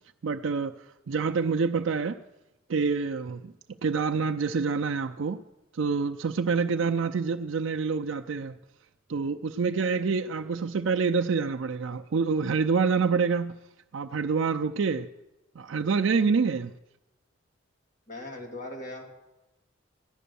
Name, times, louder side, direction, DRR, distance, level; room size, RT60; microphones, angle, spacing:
voice 1, 0.2-2.2 2.7-3.5 3.8-5.4 5.7-8.6 9.1-13.6 13.9-15.1 15.6-16.7, right 5 dB, 70° right, 0.5 m, -27 dB
voice 2, 18.1-19.1, left 1 dB, 40° left, 2.5 m, -39 dB
15.5 x 11.0 x 6.9 m
head